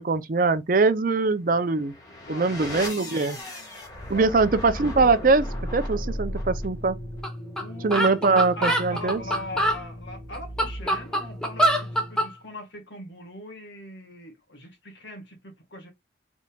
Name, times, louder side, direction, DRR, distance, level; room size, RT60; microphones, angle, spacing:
voice 1, 0.0-1.9 2.3-3.4 4.1-5.5 5.7-7.0 7.8-9.2, right 3 dB, 50° right, 0.5 m, -22 dB
sound 1, 1.6-12.4, left 1 dB, 20° left, 1.4 m, -36 dB
voice 2, 2.2-2.6 3.1-3.5 4.0-4.3 7.5-8.1 8.6-15.9, left 1 dB, 80° left, 1.7 m, -41 dB
sound 2, 7.2-7.3 7.6-7.7 7.9-9.8 10.3-12.3, equal, 5° left, 0.8 m, -24 dB
4.0 x 3.7 x 2.3 m
head